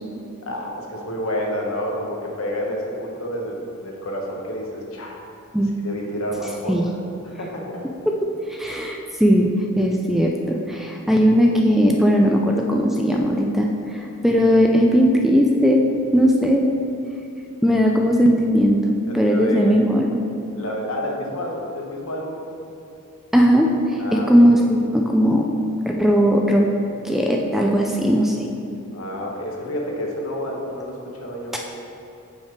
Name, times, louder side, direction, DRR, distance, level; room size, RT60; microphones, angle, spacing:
voice 1, 0.5-5.2 5.8-6.8 7.2-7.8 19.1-19.8 20.6-22.4 24.0-24.5 28.9-31.6, equal, 70° left, -1 dB, 1.0 m, -29 dB
voice 2, 8.5-15.8 16.1-16.7 17.6-20.2 23.3-25.5 26.0-26.7 27.0-28.4 31.5-31.6, equal, ahead, 0 dB, 0.3 m, -18 dB
5.6 x 4.9 x 4.4 m, 2.7 s
head